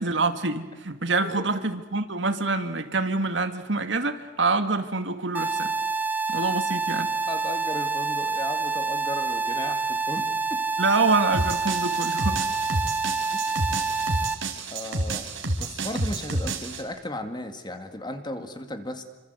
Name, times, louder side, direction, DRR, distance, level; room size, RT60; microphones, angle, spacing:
voice 1, 0.0-5.7 6.3-7.1 10.8-12.5, right 3 dB, 70° right, 8 dB, 2.1 m, -26 dB
sound 1, 5.3-14.3, right 4 dB, 10° right, 0.8 m, -27 dB
voice 2, 7.3-10.6 13.3-13.4 14.7-15.3 15.6-19.0, left 1 dB, 25° left, 7 dB, 2.2 m, -35 dB
sound 2, 11.3-16.8, right 2 dB, 85° right, 4.0 m, -30 dB
28.0 x 25.5 x 8.2 m, 1.2 s
head